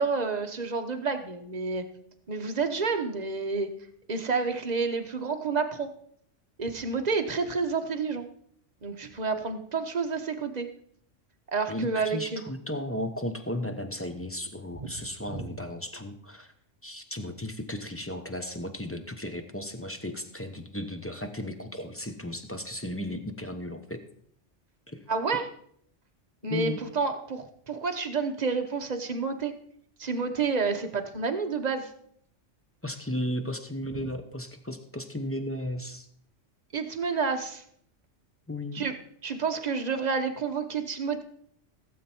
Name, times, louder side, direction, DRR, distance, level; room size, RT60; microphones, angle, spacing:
voice 1, 0.0-1.8 2.3-3.7 4.1-5.9 6.6-8.3 8.8-10.7 11.5-12.4 14.8-14.9 15.3-15.5 25.1-25.5 26.4-29.5 30.0-31.9 36.7-37.6 38.7-38.9 39.2-41.2, right 4 dB, 35° right, 6 dB, 1.1 m, -29 dB
voice 2, 11.7-16.5 16.8-24.0 24.9-25.0 26.5-26.8 32.8-36.1 38.5-38.8, left 1 dB, 10° left, 6 dB, 0.9 m, -35 dB
16.0 x 7.7 x 4.4 m, 0.67 s
omnidirectional pair, 1.2 m